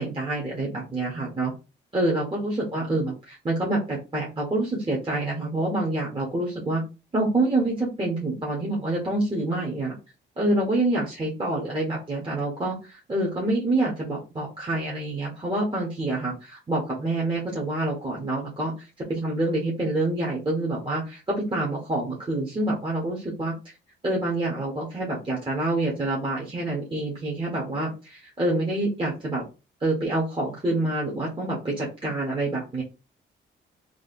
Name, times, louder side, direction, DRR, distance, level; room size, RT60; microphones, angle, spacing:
voice 1, 0.0-1.5 1.9-6.8 7.1-9.9 10.4-18.7 19.1-23.5 24.0-29.4 29.8-32.8, right 2 dB, 25° right, -3 dB, 1.5 m, -27 dB
3.3 x 2.2 x 4.3 m, 0.30 s
cardioid pair, 90°, 20 cm